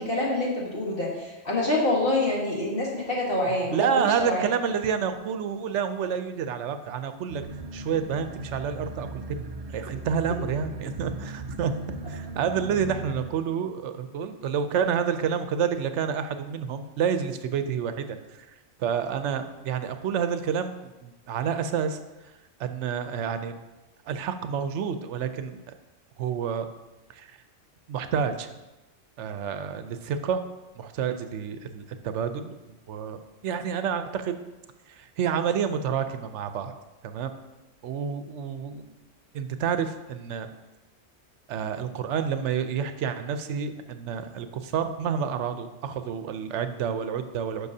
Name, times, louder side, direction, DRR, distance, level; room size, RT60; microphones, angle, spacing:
voice 1, 0.0-4.4, left 2 dB, 50° left, -4 dB, 1.6 m, -26 dB
voice 2, 3.7-7.4 7.7-11.7 12.1-18.5 18.8-20.7 21.0-22.0 22.6-23.6 24.1-25.8 26.2-26.7 27.1-27.3 27.9-28.5 29.2-30.4 30.8-32.5 32.9-34.4 34.9-36.7 37.0-37.3 37.8-38.8 39.3-40.5 41.5-47.7, right 7 dB, 75° right, 9 dB, 0.9 m, -29 dB
sound 1, 7.3-13.3, right 3 dB, 55° right, 0.4 m, -38 dB
10.0 x 6.4 x 2.7 m, 1.1 s
omnidirectional pair, 1.2 m